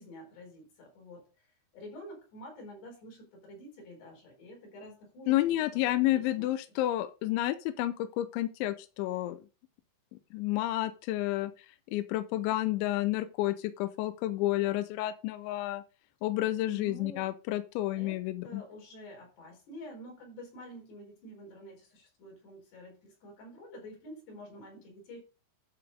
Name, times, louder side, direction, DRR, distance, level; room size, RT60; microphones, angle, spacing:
voice 1, 0.0-6.8 16.7-17.3 17.9-25.2, equal, 55° left, 0 dB, 6.2 m, -49 dB
voice 2, 5.3-9.4 10.3-15.8 16.2-18.6, left 15 dB, 80° left, 11 dB, 2.7 m, -30 dB
12.0 x 4.5 x 5.4 m, 0.34 s
omnidirectional pair, 5.7 m